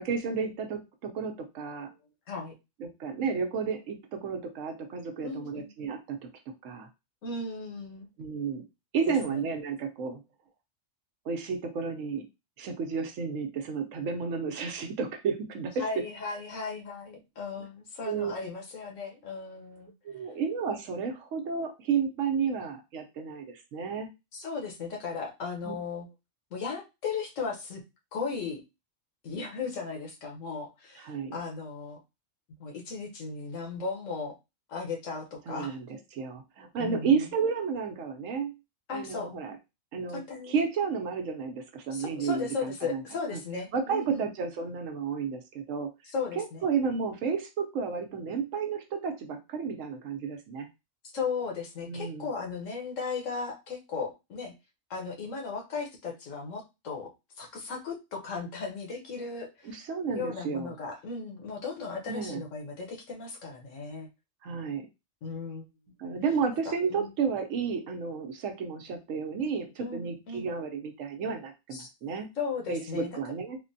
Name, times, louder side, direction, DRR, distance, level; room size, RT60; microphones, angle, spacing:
voice 1, 0.0-1.9 2.8-6.2 6.6-6.9 8.2-8.6 8.9-10.2 11.3-12.2 12.6-15.8 18.0-18.3 20.0-24.1 25.6-25.7 31.0-31.4 35.5-35.9 36.1-38.5 38.9-39.5 39.9-40.2 40.5-43.0 43.3-43.4 43.7-45.9 46.4-50.7 51.8-52.3 59.6-60.7 62.1-62.4 64.4-64.9 66.0-72.3 72.7-73.6, right 5 dB, 90° right, 5 dB, 1.1 m, -32 dB
voice 2, 5.2-5.7 7.2-8.1 9.1-9.2 15.8-19.9 24.3-26.1 26.5-27.8 28.1-28.6 29.2-32.0 32.6-34.4 34.7-35.8 36.8-37.2 38.9-39.3 40.1-40.6 41.9-44.2 46.1-46.6 51.1-54.5 54.9-57.1 57.4-59.7 60.1-64.1 65.2-65.7 66.7-67.1 69.8-70.5 71.7-71.9 72.4-73.1, left 4 dB, 85° left, 1 dB, 1.2 m, -36 dB
3.6 x 2.1 x 2.6 m, 0.24 s
omnidirectional pair, 1.3 m